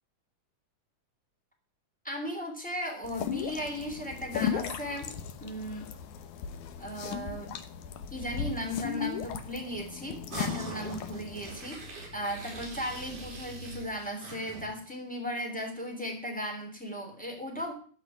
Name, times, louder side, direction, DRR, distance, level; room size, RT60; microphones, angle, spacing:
voice 1, 2.0-5.1 5.4-5.9 6.8-7.6 8.1-17.7, equal, 5° left, 1 dB, 2.8 m, -36 dB
sound 1, 3.0-11.6, left 8 dB, 70° left, 2.3 m, -37 dB
sound 2, 10.3-14.8, right 2 dB, 70° right, 5.4 m, -43 dB
14.5 x 5.0 x 9.3 m, 0.44 s
omnidirectional pair, 3.8 m